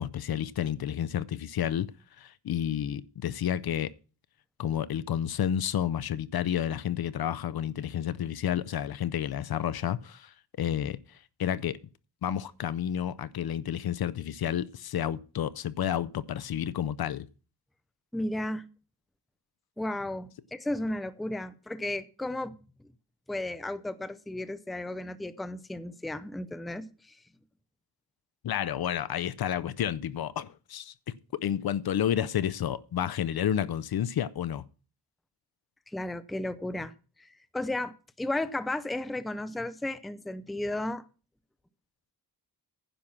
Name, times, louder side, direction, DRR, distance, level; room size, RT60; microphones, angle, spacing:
voice 1, 0.0-1.9 2.2-3.9 4.6-11.0 11.4-11.8 12.2-17.3 28.4-30.9 31.4-34.6, left 10 dB, 65° left, 0.6 m, -30 dB
voice 2, 18.1-18.7 19.8-22.9 23.3-27.2 35.9-36.9 37.2-41.0, left 1 dB, ahead, 0.5 m, -34 dB
10.5 x 6.0 x 7.2 m
wide cardioid pair, 155°, 40 cm